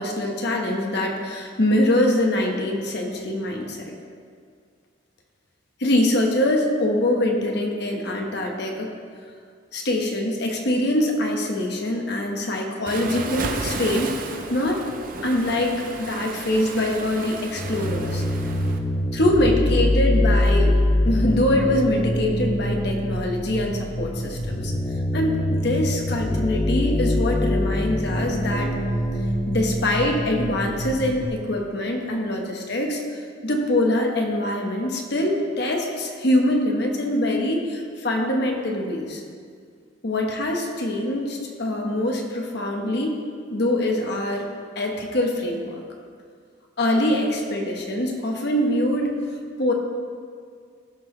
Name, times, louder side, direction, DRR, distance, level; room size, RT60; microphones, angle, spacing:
voice 1, 0.0-3.8 5.8-8.9 9.7-14.8 15.2-18.2 19.1-20.7 21.0-24.7 25.1-28.7 29.5-39.2 40.0-43.2 43.5-44.5 44.7-45.8 46.8-49.1 49.6-49.7, left 1 dB, 60° left, 1 dB, 1.2 m, -24 dB
Waves surf, 12.9-18.8, right 3 dB, 45° right, 0.7 m, -33 dB
sound 1, 17.6-31.3, left 1 dB, 25° left, 0.5 m, -24 dB
15.5 x 6.2 x 3.3 m, 2.1 s
head